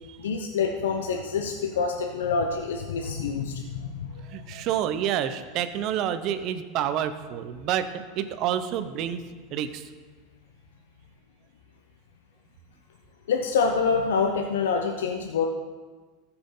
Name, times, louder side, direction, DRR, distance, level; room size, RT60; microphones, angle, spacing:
voice 1, 0.2-4.1 13.3-15.5, left 5 dB, 90° left, 2 dB, 0.8 m, -26 dB
voice 2, 4.3-9.2 9.5-9.8, right 10 dB, 50° right, 11 dB, 0.8 m, -28 dB
14.5 x 5.9 x 3.9 m, 1.4 s
hypercardioid pair, 110°, 0 cm